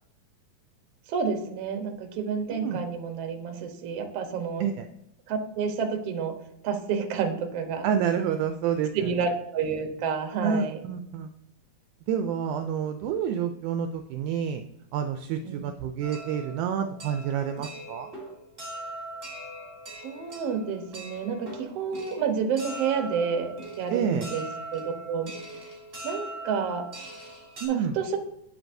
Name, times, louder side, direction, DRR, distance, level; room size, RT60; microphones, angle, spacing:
voice 1, 1.1-4.6 5.3-6.4 6.6-7.9 8.9-10.8 15.4-15.6 20.0-24.5 24.7-25.3 26.0-26.9 27.7-28.2, right 6 dB, 65° right, 5 dB, 1.7 m, -29 dB
voice 2, 7.8-9.2 10.4-11.3 12.1-14.6 14.9-18.1 23.9-24.3 27.6-28.0, right 8 dB, 80° right, 7 dB, 1.9 m, -28 dB
sound 1, 16.0-27.7, right 1 dB, 25° right, 2.8 m, -41 dB
9.1 x 7.8 x 2.6 m, 0.80 s
omnidirectional pair, 3.7 m